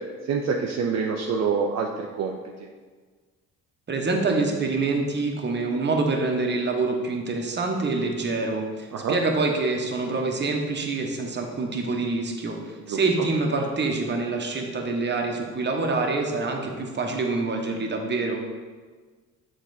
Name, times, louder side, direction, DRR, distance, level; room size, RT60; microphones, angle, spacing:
voice 1, 0.3-2.7 8.9-9.2 12.9-13.0, right 5 dB, 60° right, 1 dB, 0.6 m, -26 dB
voice 2, 3.9-18.4, right 3 dB, 35° right, 2 dB, 1.1 m, -26 dB
7.3 x 3.9 x 4.0 m, 1.5 s
cardioid pair, 90°, 30 cm